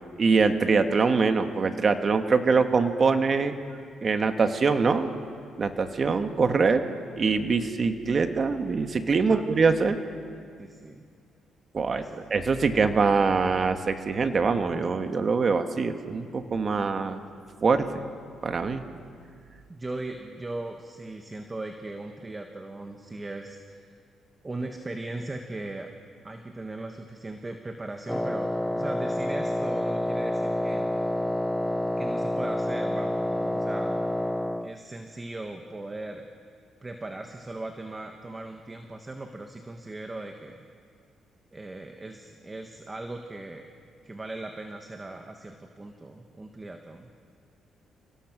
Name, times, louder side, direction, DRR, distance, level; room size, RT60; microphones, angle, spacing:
voice 1, 0.0-3.5 4.0-5.1 5.6-6.8 7.2-10.0 11.7-12.0 12.3-17.2 17.6-18.1 18.4-18.8, right 4 dB, 40° right, 7 dB, 1.6 m, -24 dB
voice 2, 10.6-11.0 11.9-12.2 19.7-23.8 24.4-25.9 26.2-31.0 32.0-34.1 34.6-36.3 36.8-40.7 41.5-43.7 44.0-47.1, right 2 dB, 20° right, 5 dB, 1.4 m, -38 dB
Wind instrument woodwind instrument, 28.1-34.7, left 1 dB, 5° left, 0.7 m, -28 dB
28.0 x 17.5 x 6.2 m, 2.2 s
cardioid pair, 90°, 0 cm